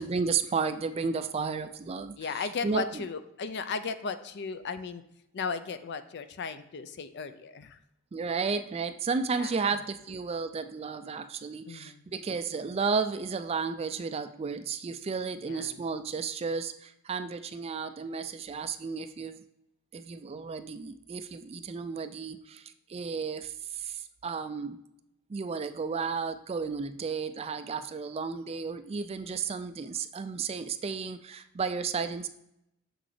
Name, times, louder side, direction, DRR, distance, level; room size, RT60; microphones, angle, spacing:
voice 1, 0.0-3.0 8.1-19.4 19.9-24.8 25.3-32.3, right 5 dB, 25° right, 10 dB, 0.3 m, -33 dB
voice 2, 2.2-5.0 5.3-7.8 9.4-9.8 11.7-12.1 15.4-15.8, left 5 dB, 50° left, 11 dB, 0.4 m, -36 dB
6.7 x 6.1 x 3.2 m, 0.82 s
head